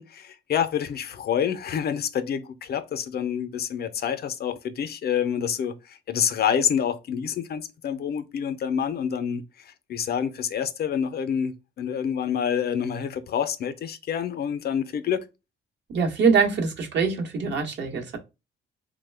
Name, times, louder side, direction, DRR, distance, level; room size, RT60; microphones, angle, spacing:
voice 1, 0.0-15.2, left 8 dB, 55° left, 0.5 m, -27 dB
voice 2, 15.9-18.2, right 5 dB, 65° right, 0.9 m, -23 dB
3.1 x 2.1 x 3.2 m
cardioid pair, 90°, 20 cm